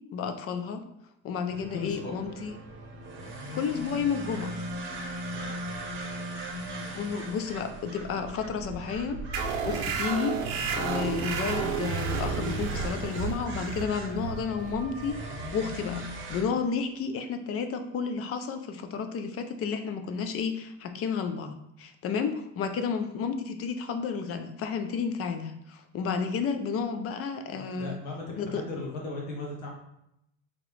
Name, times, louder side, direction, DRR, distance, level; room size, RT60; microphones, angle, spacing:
voice 1, 0.1-0.8 1.2-2.5 3.5-4.5 6.9-10.4 10.7-27.9 28.4-28.6, left 6 dB, 35° left, 8 dB, 0.5 m, -31 dB
sound 1, 1.5-16.4, right 1 dB, 30° right, 0.9 m, -39 dB
voice 2, 1.7-2.2 5.3-5.6 27.5-29.7, left 3 dB, 90° left, -2 dB, 1.3 m, -37 dB
sound 2, 9.3-16.5, right 6 dB, 75° right, 0.7 m, -32 dB
3.9 x 2.9 x 3.2 m, 0.81 s
supercardioid pair, 105°, 39 cm